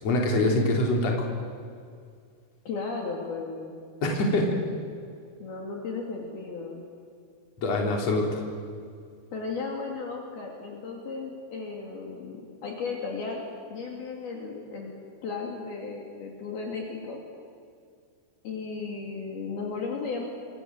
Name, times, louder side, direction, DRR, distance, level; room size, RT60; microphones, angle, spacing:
voice 1, 0.0-1.3 4.0-4.6 7.6-8.4, left 1 dB, 35° left, 0 dB, 4.5 m, -24 dB
voice 2, 2.7-3.7 5.4-6.8 9.3-13.4 13.7-14.9 15.2-17.2 18.4-20.3, left 4 dB, 55° left, 0 dB, 4.4 m, -35 dB
28.0 x 25.5 x 8.0 m, 2.2 s
omnidirectional pair, 5.4 m